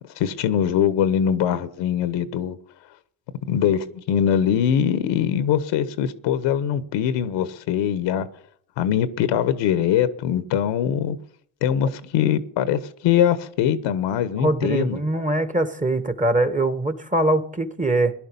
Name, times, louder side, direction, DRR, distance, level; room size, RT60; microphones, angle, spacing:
voice 1, 0.2-2.6 3.5-8.3 8.8-11.2 11.6-15.0, left 9 dB, 70° left, 1.2 m, -22 dB
voice 2, 14.4-18.1, right 2 dB, 15° right, 1.7 m, -22 dB
17.5 x 11.0 x 5.5 m
hypercardioid pair, 50°, 45 cm